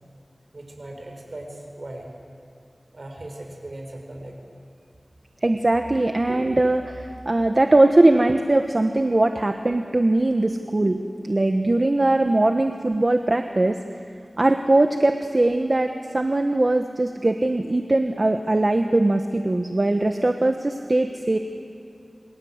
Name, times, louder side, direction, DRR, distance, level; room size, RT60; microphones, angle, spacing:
voice 1, 0.5-2.1 2.9-4.4, right 1 dB, 70° right, 2 dB, 6.0 m, -38 dB
voice 2, 5.4-14.0 14.4-21.4, right 2 dB, 50° right, 5 dB, 1.3 m, -21 dB
28.0 x 24.0 x 8.1 m, 2.4 s
wide cardioid pair, 45°, 0 cm